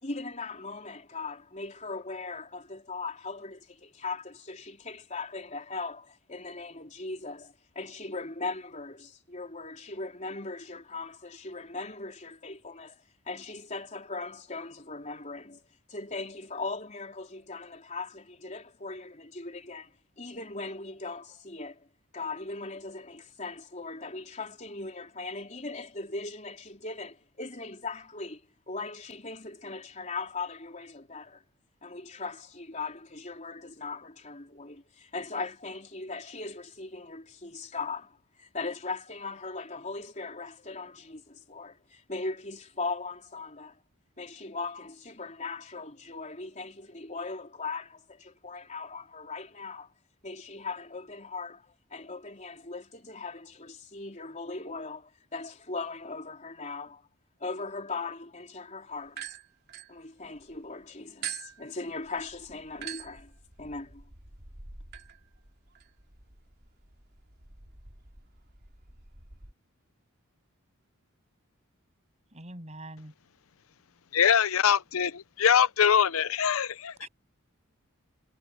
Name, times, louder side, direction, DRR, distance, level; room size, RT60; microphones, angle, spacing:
voice 1, 0.0-15.6 15.9-21.9 22.1-28.4 28.7-31.4 31.8-43.8 44.2-49.9 50.2-57.0 57.4-59.3 59.9-63.3 63.6-64.0, left 3 dB, 35° left, 4.0 m, -39 dB
sound 1, 59.1-60.6 61.2-69.5, right 8 dB, 50° right, 3.9 m, -45 dB
voice 2, 72.3-73.1 77.0-77.1, right 1 dB, 30° right, 7.6 m, -43 dB
voice 3, 74.1-77.1, left 8 dB, 75° left, 0.7 m, -23 dB
head